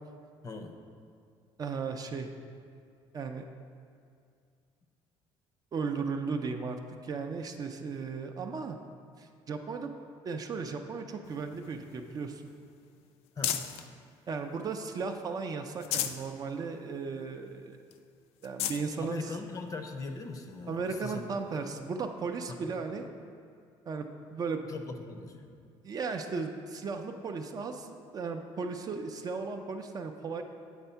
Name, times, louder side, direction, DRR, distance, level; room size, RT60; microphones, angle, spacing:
voice 1, 0.4-0.7 13.4-13.7 19.0-21.2 22.5-22.9 24.7-25.5, left 3 dB, 35° left, 5 dB, 0.6 m, -40 dB
voice 2, 1.6-2.3 3.1-3.4 5.7-8.8 9.2-9.9 10.2-12.4 14.3-17.8 18.4-19.2 20.7-23.1 23.9-24.6 25.8-30.4, right 4 dB, 35° right, 5 dB, 0.4 m, -36 dB
sound 1, 11.2-13.9 14.4-15.2 15.6-16.3 16.7-16.8 17.2-17.3 17.9-18.0 18.4-18.9 19.7-19.8 21.5-21.6, left 10 dB, 80° left, 0.4 m, -36 dB
8.0 x 3.4 x 5.6 m, 2.3 s
cardioid pair, 120°, 10 cm